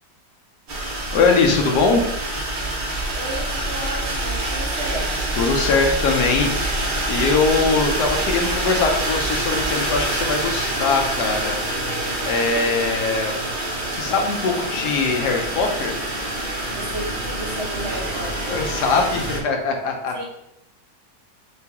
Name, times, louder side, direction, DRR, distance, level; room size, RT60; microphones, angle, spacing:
sound 1, 0.7-19.4, right 1 dB, 65° right, 0.4 m, -26 dB
voice 1, 1.1-2.0 5.3-6.5 7.1-11.6 12.2-13.3 13.9-16.0 18.5-20.1, left 4 dB, 70° left, 3 dB, 1.2 m, -21 dB
voice 2, 3.1-5.1 16.7-18.6 20.1-20.2, right 1 dB, 45° right, -3 dB, 1.1 m, -33 dB
sound 2, 3.7-19.3, left 3 dB, 85° left, 1.5 m, -42 dB
3.8 x 3.0 x 3.4 m, 0.82 s
omnidirectional pair, 1.9 m